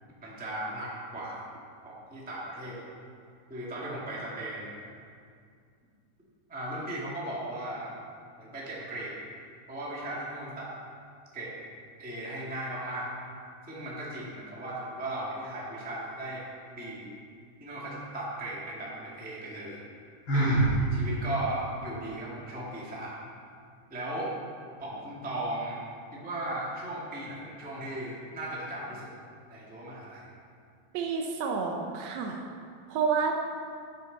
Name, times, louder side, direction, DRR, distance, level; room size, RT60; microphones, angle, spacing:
voice 1, 0.2-1.4 1.8-2.8 3.5-4.9 6.5-7.9 8.4-9.2 9.7-10.7 11.3-11.5 12.0-13.1 13.7-16.4 16.7-17.1 17.6-19.8 20.3-23.2 23.9-24.3 24.8-25.8 26.1-29.1 29.5-30.2, right 1 dB, 5° right, -5 dB, 1.0 m, -37 dB
Sigh, 20.3-20.8, right 2 dB, 40° left, 2.2 m, -23 dB
voice 2, 30.9-32.5 32.9-33.4, right 5 dB, 75° right, 2 dB, 1.7 m, -29 dB
12.0 x 9.0 x 4.0 m, 2.3 s
omnidirectional pair, 3.7 m